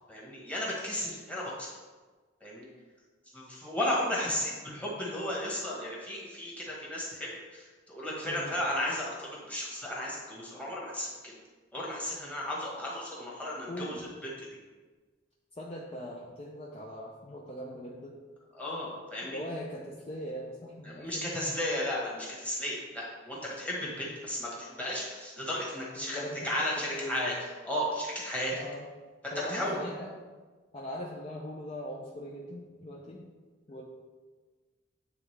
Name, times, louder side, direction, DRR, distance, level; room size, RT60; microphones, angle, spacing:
voice 1, 0.1-1.7 2.4-2.7 3.3-11.1 11.7-13.9 14.2-14.3 18.5-19.4 20.8-27.3 27.6-28.5 29.5-29.8, left 1 dB, 5° left, -5 dB, 1.4 m, -34 dB
voice 2, 13.7-14.0 15.6-18.1 19.2-21.5 25.9-27.2 28.5-28.9 29.3-30.1 30.7-33.2 33.7-33.8, equal, 30° left, -3 dB, 0.5 m, -40 dB
8.9 x 3.6 x 3.3 m, 1.4 s
head